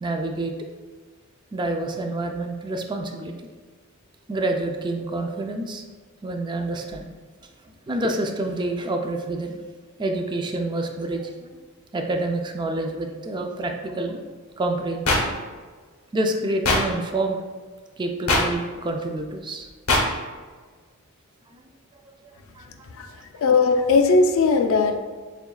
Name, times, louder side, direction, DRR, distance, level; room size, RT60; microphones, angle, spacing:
voice 1, 0.0-0.5 1.5-3.3 4.3-5.8 6.2-7.1 7.9-9.6 10.0-11.5 11.9-14.2 14.6-15.3 16.1-17.4 18.0-19.7 22.6-22.7, right 2 dB, 20° right, 3 dB, 0.3 m, -27 dB
sound 1, 15.1-15.2 16.6-16.8 18.3-18.4 19.9-20.0, left 2 dB, 90° left, 0.8 m, -19 dB
voice 2, 23.4-25.0, left 4 dB, 65° left, 6 dB, 0.4 m, -18 dB
6.8 x 2.3 x 2.3 m, 1.5 s
head